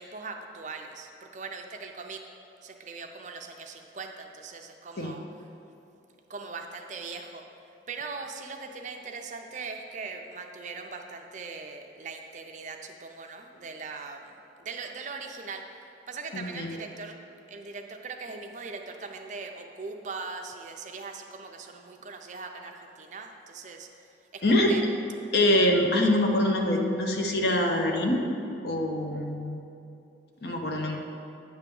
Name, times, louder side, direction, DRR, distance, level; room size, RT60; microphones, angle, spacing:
voice 1, 0.0-2.2 2.6-5.2 6.3-7.4 7.9-14.3 14.6-15.6 16.1-17.2 17.5-23.9 24.3-24.8, right 4 dB, 40° right, 4 dB, 0.5 m, -40 dB
voice 2, 16.3-16.7 24.4-24.7 25.3-28.2 28.6-29.6 30.4-31.0, left 1 dB, 60° left, 2 dB, 0.8 m, -24 dB
9.1 x 3.6 x 6.9 m, 2.7 s
head